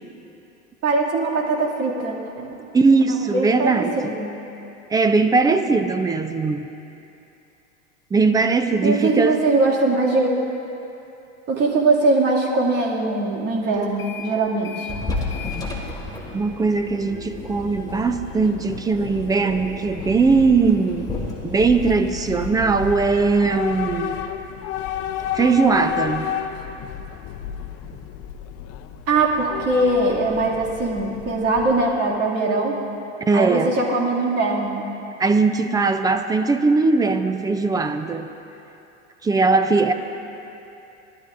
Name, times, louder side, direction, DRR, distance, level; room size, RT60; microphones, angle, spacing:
voice 1, 0.8-2.4 3.3-4.4 8.8-10.3 11.5-14.9 29.1-32.7 33.3-34.8, right 2 dB, 40° right, -3 dB, 2.4 m, -21 dB
voice 2, 2.4-4.1 4.9-6.7 8.1-9.4 16.3-21.1 21.4-24.2 25.3-26.3 33.3-33.7 35.2-38.3 39.2-39.9, right 4 dB, 10° right, 8 dB, 0.4 m, -20 dB
sound 1, 13.8-14.3 14.6-23.1, left 3 dB, 10° left, 2.3 m, -34 dB
Train / Subway metro underground, 17.3-32.1, left 9 dB, 40° left, 0.7 m, -32 dB
20.0 x 12.0 x 2.6 m, 2.8 s
supercardioid pair, 110°, 37 cm